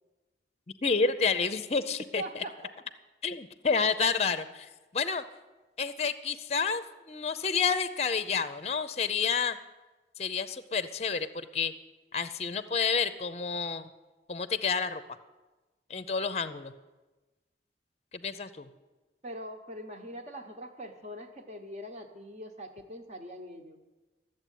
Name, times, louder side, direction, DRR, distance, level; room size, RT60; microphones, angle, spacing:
voice 1, 0.8-2.4 3.2-5.2 5.8-9.6 10.2-11.7 12.1-13.9 14.3-15.0 15.9-16.7 18.1-18.7, left 5 dB, 35° left, 13 dB, 0.6 m, -29 dB
voice 2, 2.2-2.6 19.2-23.8, equal, 40° right, 5 dB, 1.2 m, -42 dB
13.5 x 7.6 x 9.2 m, 1.2 s
head